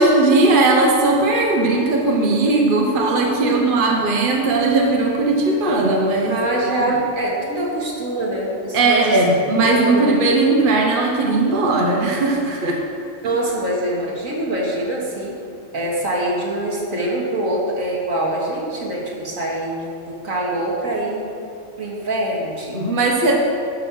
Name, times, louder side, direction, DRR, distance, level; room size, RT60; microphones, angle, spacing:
voice 1, 0.0-6.4 8.7-12.8 22.7-23.4, right 2 dB, 40° right, 0 dB, 1.3 m, -17 dB
voice 2, 6.3-9.2 9.7-10.2 13.2-15.3 15.7-21.3 21.8-22.8, right 1 dB, 80° right, -4 dB, 2.4 m, -24 dB
11.5 x 6.6 x 6.2 m, 2.4 s
omnidirectional pair, 1.4 m